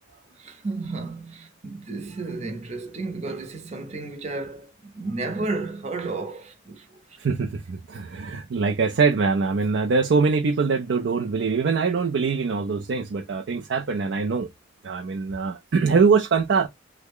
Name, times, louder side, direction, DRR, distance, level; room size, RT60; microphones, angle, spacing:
voice 1, 0.1-6.9, right 3 dB, 35° right, 0.7 m, -32 dB
voice 2, 7.2-14.5 14.8-16.7, right 5 dB, 60° right, 0.4 m, -23 dB
3.3 x 2.1 x 3.5 m
head